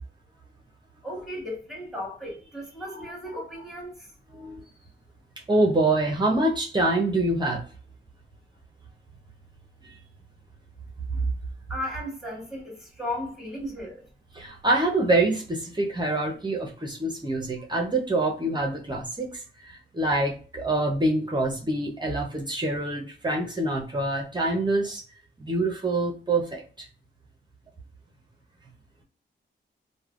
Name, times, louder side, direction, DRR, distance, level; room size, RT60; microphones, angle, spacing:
voice 1, 1.0-4.1 11.7-14.0, left 1 dB, ahead, 1.4 m, -35 dB
voice 2, 2.9-3.4 4.3-4.6 5.5-7.6 14.3-25.0 25.4-26.9, right 2 dB, 20° right, 0.7 m, -26 dB
3.2 x 2.1 x 2.4 m
cardioid pair, 80°, 20 cm